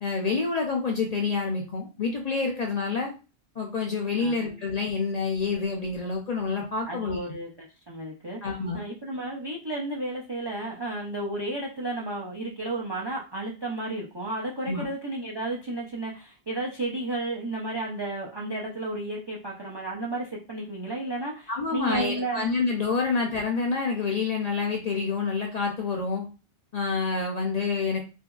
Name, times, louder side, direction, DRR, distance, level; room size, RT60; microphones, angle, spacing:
voice 1, 0.0-3.1 3.6-7.2 8.4-8.8 14.7-14.9 21.5-26.3 26.7-28.0, left 4 dB, 55° left, 1 dB, 0.4 m, -27 dB
voice 2, 4.2-4.6 6.9-22.4, right 2 dB, 45° right, -1 dB, 0.3 m, -33 dB
2.8 x 2.6 x 2.3 m, 0.32 s
omnidirectional pair, 1.1 m